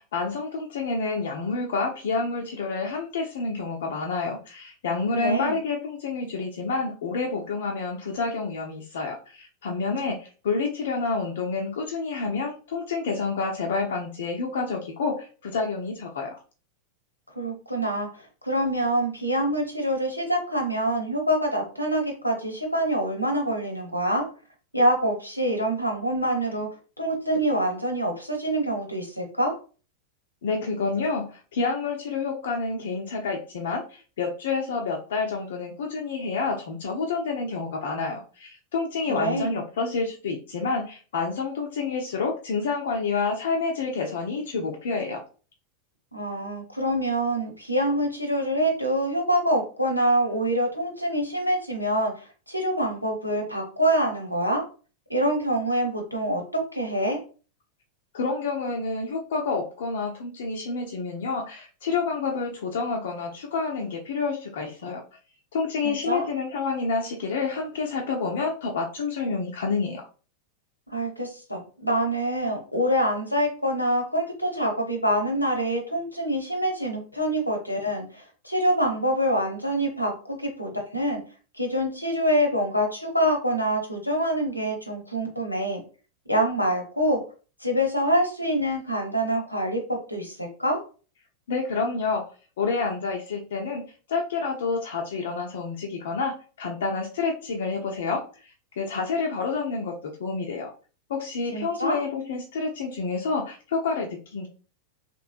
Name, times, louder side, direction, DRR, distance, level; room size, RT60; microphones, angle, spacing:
voice 1, 0.0-16.4 30.4-45.2 58.1-65.0 65.5-70.1 91.5-92.3 92.6-93.8 94.1-100.7 101.1-104.5, left 4 dB, 60° left, 1 dB, 0.5 m, -28 dB
voice 2, 5.1-5.6 17.4-24.3 24.7-26.7 27.0-29.5 39.1-39.5 46.1-52.1 52.5-54.6 55.1-57.2 65.8-66.2 70.9-81.2 81.5-85.8 86.3-87.2 87.6-90.8 101.5-102.0, right 1 dB, 90° left, 2 dB, 0.9 m, -25 dB
3.2 x 3.1 x 2.4 m, 0.37 s
figure-of-eight pair, 90°, 0 cm